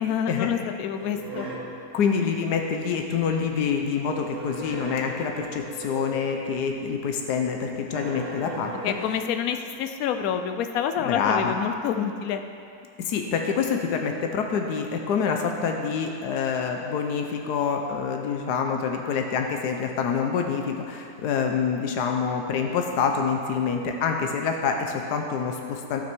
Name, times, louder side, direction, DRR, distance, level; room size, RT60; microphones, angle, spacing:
voice 1, 0.0-1.5 8.8-12.4, left 8 dB, 70° left, 7 dB, 1.1 m, -27 dB
sound 1, 0.9-1.8 4.0-6.5 7.9-9.2, right 3 dB, 65° right, 2.1 m, -37 dB
voice 2, 1.9-8.7 11.0-11.5 13.0-26.0, left 6 dB, 85° left, 3 dB, 1.4 m, -26 dB
16.0 x 6.1 x 4.6 m, 2.4 s
omnidirectional pair, 1.7 m